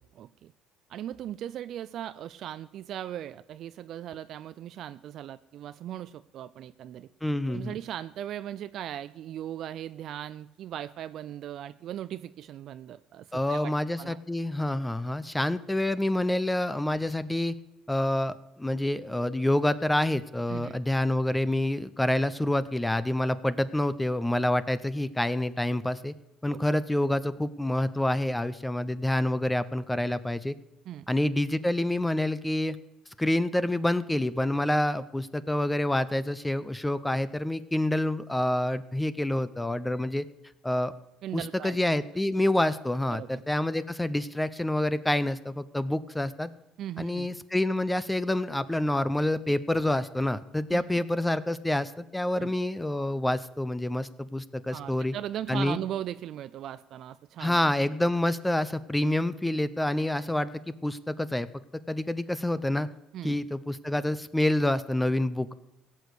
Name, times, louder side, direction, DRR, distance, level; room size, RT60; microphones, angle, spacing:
voice 1, 0.1-0.5 0.9-7.1 7.5-13.7 14.0-14.2 20.5-20.8 26.5-26.6 30.9-31.1 41.2-41.8 43.1-43.4 46.8-47.3 50.7-50.8 52.3-52.6 54.7-57.7 63.1-63.4, right 11 dB, 60° right, 13 dB, 0.4 m, -38 dB
voice 2, 7.2-7.7 13.3-17.5 17.9-26.1 26.4-30.5 31.1-32.8 33.2-40.2 40.6-40.9 41.3-46.5 47.0-55.1 55.5-55.8 57.4-60.5 60.8-61.5 61.9-62.9 63.2-65.5, left 1 dB, 10° left, 15 dB, 0.6 m, -27 dB
16.5 x 6.4 x 8.2 m, 0.96 s
supercardioid pair, 80°, 0 cm